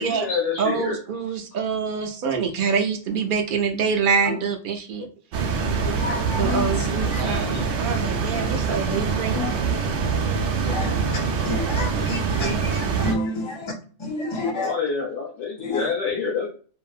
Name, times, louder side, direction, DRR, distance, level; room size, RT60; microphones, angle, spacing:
voice 1, 0.0-1.0 7.2-7.6 14.3-16.5, left 5 dB, 75° left, 1.4 m, -27 dB
voice 2, 0.6-5.1 6.4-9.6 12.4-13.0, right 6 dB, 55° right, 0.6 m, -26 dB
sound 1, 5.3-13.1, right 5 dB, 85° right, 1.0 m, -24 dB
voice 3, 5.8-6.7 7.1-7.4 9.3-9.5 10.7-10.9 11.5-13.7 14.1-14.7 15.7-15.8, left 2 dB, 35° left, 0.4 m, -29 dB
2.9 x 2.6 x 2.4 m
omnidirectional pair, 1.2 m